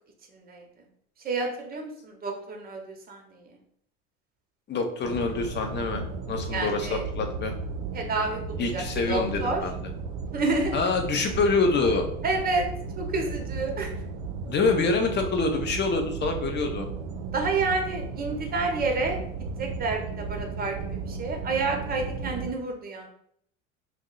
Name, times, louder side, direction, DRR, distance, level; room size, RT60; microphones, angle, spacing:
voice 1, 0.3-0.6 1.2-3.4 6.5-7.0 7.9-9.6 10.3-10.7 12.2-12.6 13.0-13.9 17.3-19.2 19.6-23.1, right 3 dB, 25° right, 3 dB, 0.7 m, -29 dB
voice 2, 4.7-7.5 8.6-9.8 10.7-12.1 14.5-16.9, left 3 dB, 25° left, 5 dB, 0.6 m, -26 dB
sound 1, 5.0-22.5, right 4 dB, 55° right, 0.5 m, -35 dB
2.6 x 2.0 x 3.8 m, 0.67 s
hypercardioid pair, 75°, 40 cm